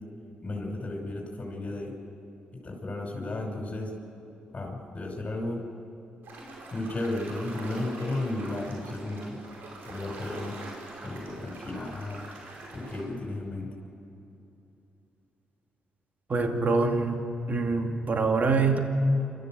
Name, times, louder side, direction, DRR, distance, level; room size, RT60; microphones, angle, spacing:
voice 1, 0.4-1.9 2.6-3.9 4.5-5.6 6.7-9.4 9.9-10.5 11.0-12.2 12.7-13.7, left 2 dB, 35° left, -1 dB, 5.6 m, -33 dB
sound 1, 6.2-13.0, right 2 dB, 75° right, 5.2 m, -44 dB
voice 2, 16.3-17.2 17.5-18.8, right 4 dB, 50° right, 4 dB, 2.6 m, -25 dB
27.5 x 13.5 x 7.7 m, 2.9 s
supercardioid pair, 50°, 4 cm